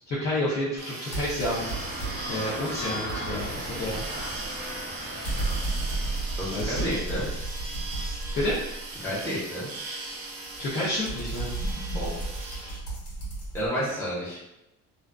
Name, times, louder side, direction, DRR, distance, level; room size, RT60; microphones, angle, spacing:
voice 1, 0.1-1.7 2.3-4.0 6.5-6.9 8.3-8.6 10.6-11.5, left 1 dB, 35° left, -8 dB, 0.5 m, -29 dB
sound 1, 0.8-12.8, right 2 dB, 85° right, 0.6 m, -39 dB
sound 2, 1.1-2.4 2.7-8.9 10.4-13.7, right 2 dB, 70° left, 1.0 m, -33 dB
sound 3, 1.5-6.6, equal, 30° right, 0.6 m, -37 dB
voice 2, 6.4-7.2 9.0-9.7 11.9-12.1 12.6-12.7 13.5-14.4, equal, 10° left, -9 dB, 0.9 m, -30 dB
2.4 x 2.3 x 2.2 m, 0.89 s
cardioid pair, 155°, 30 cm